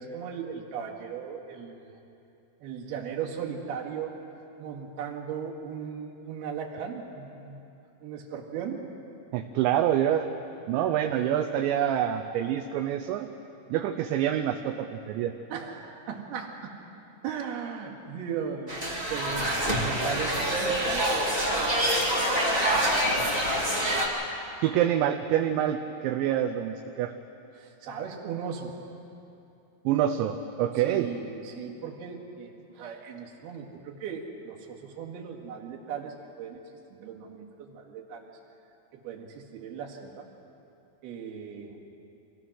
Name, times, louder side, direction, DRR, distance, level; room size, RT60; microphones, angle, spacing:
voice 1, 0.0-1.9 2.6-4.1 4.6-7.6 8.0-8.9 15.5-16.7 17.2-21.7 27.5-28.7 30.7-36.6 36.9-38.3 38.9-40.3 41.0-41.8, right 7 dB, 65° right, -1 dB, 3.5 m, -37 dB
voice 2, 9.3-10.3 10.7-13.3 13.7-15.3 24.6-27.1 29.9-31.1, right 10 dB, 80° right, 4 dB, 2.9 m, -26 dB
sound 1, 18.7-24.1, right 1 dB, 25° right, 0.8 m, -26 dB
26.0 x 17.0 x 6.3 m, 2.7 s
omnidirectional pair, 5.4 m